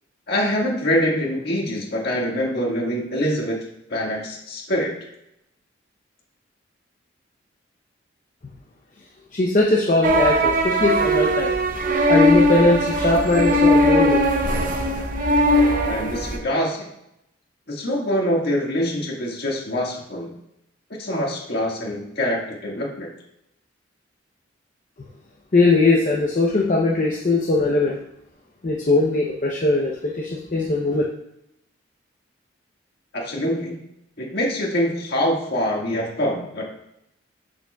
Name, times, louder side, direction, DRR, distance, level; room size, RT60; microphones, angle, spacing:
voice 1, 0.3-3.6 3.9-4.9 15.9-16.9 17.7-20.3 21.0-23.1 33.1-33.8 34.2-36.7, equal, 55° left, -1 dB, 1.7 m, -24 dB
voice 2, 9.3-11.6 12.1-14.2 25.5-28.0 28.6-31.0, left 2 dB, 40° left, -1 dB, 0.6 m, -20 dB
sound 1, 10.0-16.4, equal, 45° right, 0.7 m, -19 dB
7.2 x 7.0 x 2.3 m, 0.81 s
head